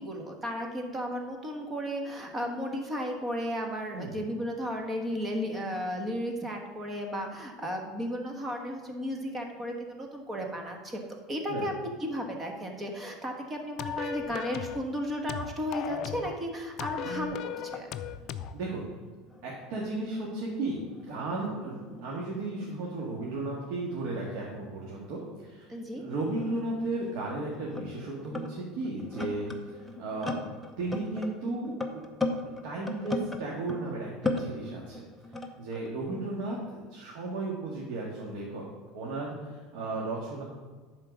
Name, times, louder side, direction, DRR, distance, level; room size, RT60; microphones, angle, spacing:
voice 1, 0.0-11.0 11.3-17.9 25.7-26.0 36.1-36.2, equal, 15° right, 2 dB, 1.3 m, -34 dB
sound 1, 13.8-14.8 15.3-16.4 16.8-18.6, left 10 dB, 45° left, 0.4 m, -36 dB
sound 2, 17.6-20.4 20.6-24.4 25.3-25.4 26.1-33.9 34.2-35.9, left 2 dB, 5° left, 0.8 m, -38 dB
voice 2, 19.4-30.4 30.8-32.0 32.6-35.0 35.3-38.6 38.9-40.4, right 2 dB, 65° right, -3 dB, 1.8 m, -35 dB
10.5 x 4.4 x 6.2 m, 1.4 s
supercardioid pair, 145°, 0 cm